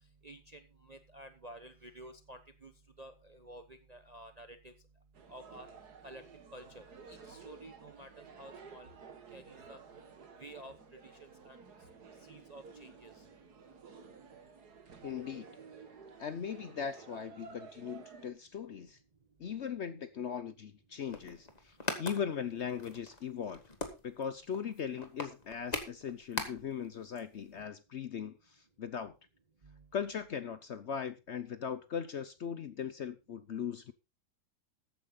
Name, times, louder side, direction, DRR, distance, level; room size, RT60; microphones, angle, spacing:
voice 1, 0.2-2.7 3.0-4.7 5.3-5.7 6.0-6.2 6.5-8.9 9.3-9.8 10.4-11.0 11.4-11.6 12.3-13.1 29.6-29.8, right 1 dB, 30° right, 0.9 m, -51 dB
sound 1, 5.1-18.3, right 5 dB, 75° right, 2.3 m, -53 dB
voice 2, 15.0-15.5 16.2-19.0 19.4-23.6 24.0-29.2 29.9-33.9, left 7 dB, 55° left, 0.8 m, -39 dB
sound 2, 21.0-26.9 27.2-27.3 27.5-27.6, left 2 dB, 25° left, 1.8 m, -41 dB
14.0 x 9.4 x 3.9 m
omnidirectional pair, 1.7 m